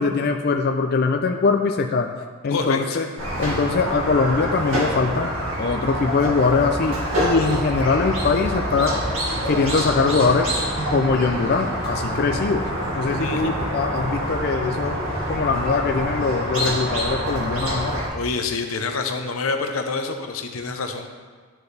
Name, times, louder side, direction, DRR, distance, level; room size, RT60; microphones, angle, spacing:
voice 1, 0.0-2.1 2.4-3.1 3.4-5.3 5.6-9.0 9.5-10.5 10.9-12.7 13.0-15.0 15.3-18.0, left 4 dB, 50° left, 4 dB, 0.4 m, -22 dB
voice 2, 2.5-3.0 13.2-13.5 18.1-21.1, left 4 dB, 90° left, 5 dB, 0.7 m, -27 dB
Squeak, 3.2-18.1, equal, 70° right, 2.1 m, -26 dB
11.5 x 4.5 x 3.3 m, 1.5 s
head